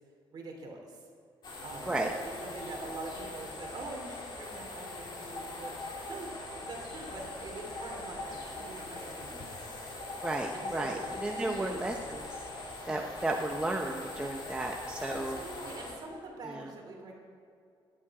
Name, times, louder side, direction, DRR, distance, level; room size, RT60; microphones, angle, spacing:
voice 1, 0.3-1.0 1.6-2.0 2.4-9.4 10.5-11.8 15.0-17.1, right 2 dB, 45° right, 0 dB, 3.0 m, -44 dB
sound 1, 1.4-15.9, left 2 dB, 50° left, 3.0 m, -42 dB
voice 2, 10.2-12.3 12.9-15.4 16.4-16.7, right 2 dB, 10° right, 1 dB, 0.8 m, -33 dB
17.5 x 11.5 x 4.9 m, 2.4 s
wide cardioid pair, 175°, 10 cm